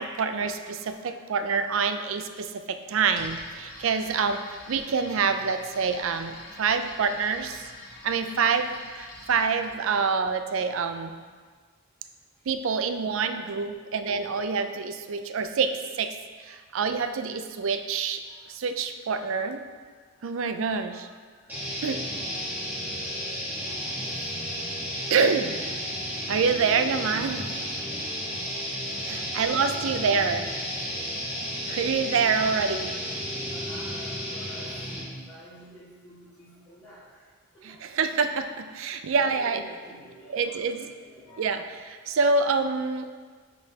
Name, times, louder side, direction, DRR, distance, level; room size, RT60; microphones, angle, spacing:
voice 1, 0.0-7.7 8.0-11.1 12.5-16.2 16.4-18.2 18.5-19.6 20.2-21.1 21.8-22.0 25.1-25.6 26.3-27.5 29.0-30.5 31.7-33.0 37.6-39.6 40.3-40.9 41.4-43.1, right 5 dB, 65° right, 8 dB, 0.4 m, -26 dB
voice 2, 0.6-1.7 3.6-3.7 6.2-7.1 7.5-7.6 18.2-18.4 20.5-21.1 23.0-23.1 24.1-24.2 28.8-28.9 33.4-34.7 35.2-37.2 37.5-37.8 39.3-41.7, equal, 15° left, -15 dB, 1.6 m, -50 dB
sound 1, 3.1-9.8, left 1 dB, 90° left, 1.3 m, -46 dB
sound 2, 21.5-35.2, equal, 10° right, 1.2 m, -33 dB
9.7 x 4.0 x 2.8 m, 1.5 s
head